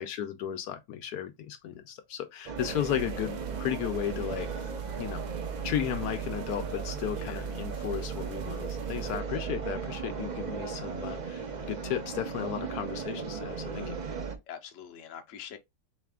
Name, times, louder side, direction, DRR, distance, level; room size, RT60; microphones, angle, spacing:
voice 1, 0.0-4.5 5.0-5.2 5.6-14.0, left 10 dB, 80° left, 1.1 m, -34 dB
sound 1, 2.5-14.4, right 6 dB, 55° right, 0.4 m, -36 dB
sound 2, 2.6-9.2, right 8 dB, 80° right, 1.2 m, -46 dB
voice 2, 14.5-15.6, left 8 dB, 60° left, 1.0 m, -44 dB
3.3 x 3.2 x 3.5 m
omnidirectional pair, 1.7 m